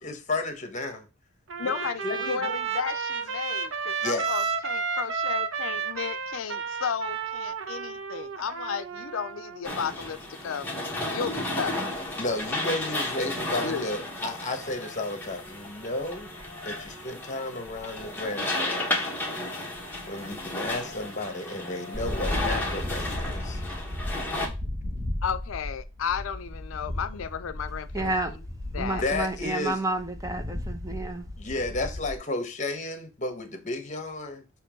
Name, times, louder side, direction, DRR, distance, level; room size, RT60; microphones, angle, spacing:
voice 1, 0.0-1.1 1.6-1.7 2.0-2.5 4.0-4.5 12.2-16.3 16.6-19.1 20.1-23.6 29.0-29.8 31.4-34.4, left 2 dB, 40° left, 1.2 m, -33 dB
Trumpet, 1.5-9.6, right 6 dB, 70° right, 0.8 m, -32 dB
voice 2, 1.6-10.2 10.4-10.7 11.1-11.8 13.6-13.9 25.2-28.1 28.7-29.0, left 7 dB, 85° left, 0.5 m, -33 dB
sound 1, 9.6-24.5, left 2 dB, 10° left, 1.5 m, -33 dB
sound 2, 21.9-32.2, left 1 dB, 45° right, 1.5 m, -35 dB
voice 3, 27.9-28.3 28.8-31.2, right 2 dB, 15° right, 0.8 m, -30 dB
6.9 x 3.0 x 5.1 m
head